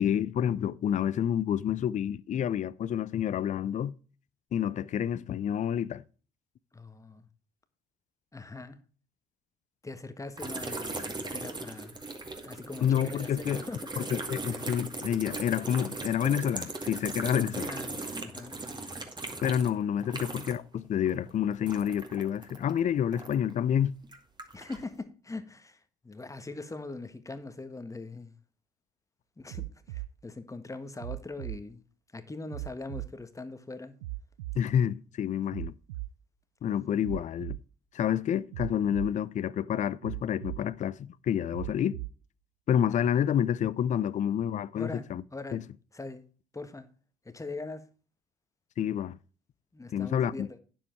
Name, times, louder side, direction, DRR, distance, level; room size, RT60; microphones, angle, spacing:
voice 1, 0.0-3.9 4.5-6.0 12.8-13.6 14.0-17.7 19.4-24.0 34.6-35.7 36.6-37.6 37.9-42.0 42.7-45.2 45.5-45.6 48.8-49.2 49.9-50.5, left 9 dB, 45° left, 0.6 m, -28 dB
voice 2, 6.7-7.3 8.3-8.8 9.8-12.0 12.4-14.1 17.6-18.6 24.5-28.3 29.4-31.8 32.1-33.9 44.7-45.6 45.9-46.2 46.5-46.9 47.2-47.8 49.7-50.6, left 3 dB, 15° left, 1.5 m, -42 dB
sound 1, 10.4-20.7 21.0-23.5 24.0-24.9, right 2 dB, 25° right, 2.2 m, -39 dB
sound 2, 29.5-30.1 31.0-31.6 32.5-33.1 34.0-34.6 35.5-36.1 37.0-37.6 38.5-39.1 40.0-40.6 41.5-42.1 43.0-43.1, right 19 dB, 80° right, 0.4 m, -37 dB
9.6 x 7.5 x 4.5 m
hypercardioid pair, 55°, 18 cm